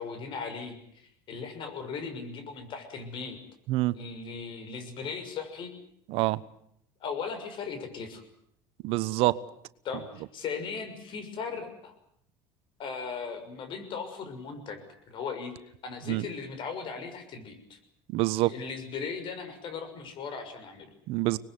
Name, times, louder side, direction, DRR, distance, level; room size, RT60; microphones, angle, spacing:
voice 1, 0.0-3.4 3.9-5.7 7.0-8.2 9.8-11.9 12.8-14.8 15.1-17.8 18.4-20.9, left 5 dB, 50° left, 8 dB, 6.4 m, -38 dB
voice 2, 6.1-6.4 8.8-9.4 16.1-16.3 18.1-18.5 21.1-21.4, right 18 dB, 65° right, 15 dB, 1.1 m, -26 dB
24.5 x 20.5 x 9.4 m, 0.71 s
supercardioid pair, 100°, 11 cm